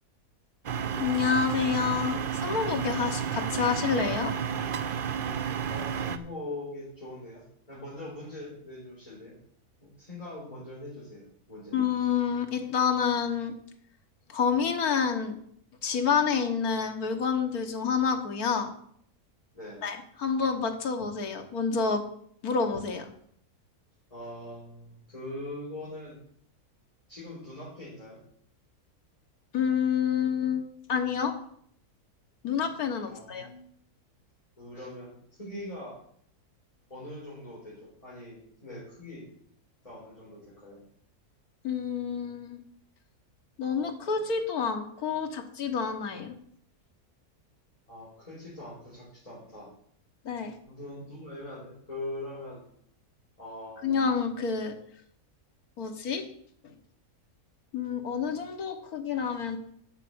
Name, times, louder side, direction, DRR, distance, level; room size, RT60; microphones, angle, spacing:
sound 1, 0.6-6.2, right 7 dB, 50° right, 0.6 m, -31 dB
voice 1, 1.0-4.3 11.7-13.5 14.3-15.4 15.8-18.7 19.8-22.0 22.4-23.1 29.5-31.3 32.4-33.5 41.6-42.6 43.6-46.4 50.3-50.5 53.8-54.7 55.8-56.2 57.7-59.6, left 6 dB, 75° left, 4 dB, 1.8 m, -28 dB
voice 2, 5.7-9.4 9.8-11.8 19.5-19.8 24.1-26.2 27.1-28.2 33.0-33.6 34.6-36.0 36.9-39.3 39.8-40.8 47.9-49.7 50.6-52.6 53.4-53.9, left 1 dB, 25° left, -8 dB, 4.6 m, -42 dB
9.1 x 6.8 x 8.0 m, 0.64 s
omnidirectional pair, 1.6 m